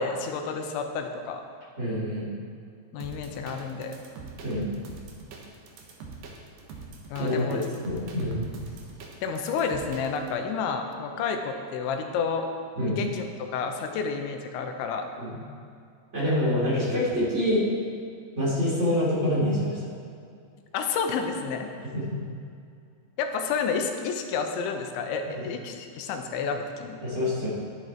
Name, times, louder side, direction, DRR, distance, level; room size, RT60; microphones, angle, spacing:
voice 1, 0.0-1.4 2.9-4.0 7.1-7.7 9.2-12.5 12.9-13.2 13.5-15.1 20.7-21.7 23.2-27.0, left 5 dB, 90° left, 5 dB, 3.2 m, -30 dB
voice 2, 1.8-2.3 4.4-4.7 7.2-8.5 12.8-13.0 15.2-15.3 16.1-17.6 18.4-19.8 21.9-22.2 25.4-25.5 27.0-27.5, left 1 dB, 20° right, -7 dB, 2.7 m, -26 dB
sound 1, 3.0-10.3, right 4 dB, 65° right, 2.6 m, -43 dB
11.0 x 11.0 x 4.4 m, 2.3 s
omnidirectional pair, 5.1 m